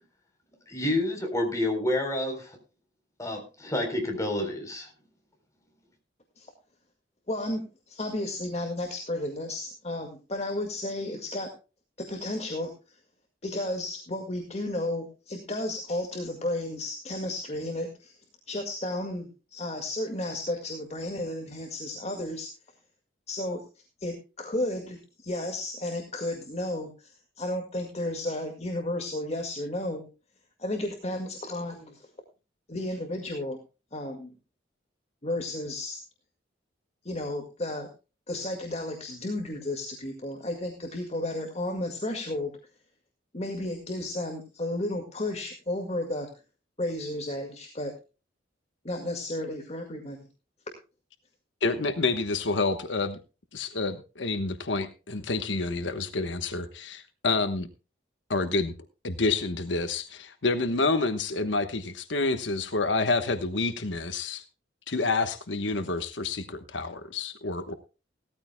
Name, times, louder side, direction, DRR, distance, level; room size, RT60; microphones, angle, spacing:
voice 1, 0.7-2.6 3.2-4.9, left 1 dB, 15° left, 2 dB, 3.9 m, -29 dB
voice 2, 7.3-7.6 7.9-11.5 12.1-12.7 13.4-18.2 18.5-22.5 23.3-23.6 24.0-27.1 27.4-30.1 30.6-32.1 32.7-33.6 33.9-34.3 35.2-36.0 37.0-37.9 38.3-42.5 43.3-46.3 46.8-47.9 48.8-50.2, left 1 dB, 35° left, 3 dB, 2.0 m, -33 dB
voice 3, 51.6-53.2 53.5-57.7 58.3-58.7 59.0-64.4 64.9-67.7, left 3 dB, 80° left, 9 dB, 1.2 m, -28 dB
17.5 x 14.0 x 2.2 m, 0.32 s
head